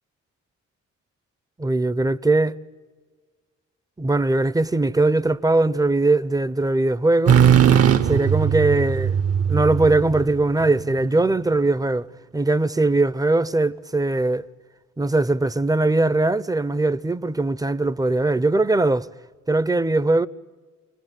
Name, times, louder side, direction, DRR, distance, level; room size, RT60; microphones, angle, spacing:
voice 1, 1.6-2.6 4.0-7.4 8.0-9.2 9.5-12.1 12.3-14.4 15.0-19.1 19.5-20.3, right 2 dB, 10° right, 0.7 m, -20 dB
sound 1, 7.3-11.0, right 8 dB, 50° right, 1.1 m, -18 dB
29.0 x 20.0 x 9.3 m
cardioid pair, 90°, 30 cm